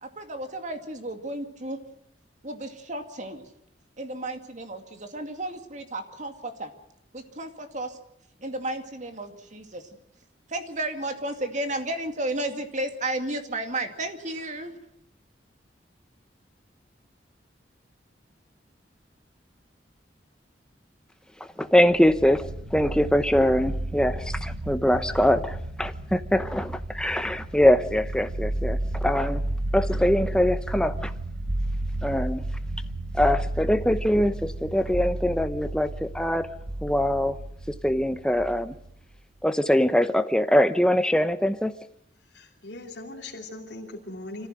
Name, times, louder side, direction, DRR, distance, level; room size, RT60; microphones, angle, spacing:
voice 1, 0.0-1.8 2.4-3.5 4.0-6.7 7.1-8.0 8.4-9.8 10.5-14.8, right 1 dB, 45° right, 6 dB, 2.3 m, -33 dB
voice 2, 21.4-29.4 29.7-31.1 32.0-32.4 33.1-36.5 36.8-37.4 37.8-38.7 39.4-41.7, left 1 dB, 5° left, 10 dB, 0.8 m, -23 dB
sound 1, 21.8-39.1, right 1 dB, 70° right, 1.3 m, -32 dB
voice 3, 42.2-44.5, left 2 dB, 85° left, -2 dB, 3.0 m, -40 dB
25.5 x 15.0 x 7.8 m, 0.75 s
head